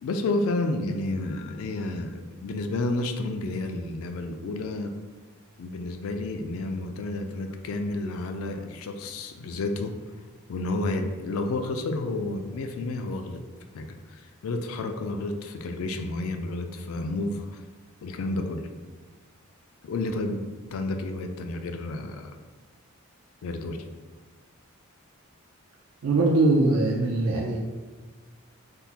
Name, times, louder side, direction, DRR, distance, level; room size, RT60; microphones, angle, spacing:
voice 1, 0.0-4.9 5.6-9.9 10.5-13.4 13.7-17.6 18.0-18.7 19.8-22.3 23.4-23.8, left 2 dB, 75° left, 6 dB, 0.3 m, -31 dB
voice 2, 26.0-27.6, right 2 dB, 80° right, -2 dB, 0.4 m, -22 dB
3.5 x 2.1 x 2.8 m, 1.4 s
head